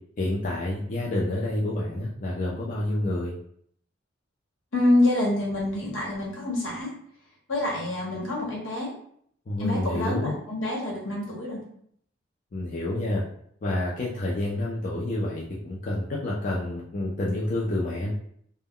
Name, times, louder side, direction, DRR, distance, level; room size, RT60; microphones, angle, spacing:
voice 1, 0.2-3.3 9.5-10.4 12.5-13.2 13.6-18.1, left 1 dB, 40° left, -5 dB, 0.4 m, -28 dB
voice 2, 4.7-6.9 7.5-8.9 9.6-11.6, left 1 dB, 75° left, -3 dB, 1.0 m, -26 dB
2.1 x 2.1 x 3.6 m, 0.64 s
head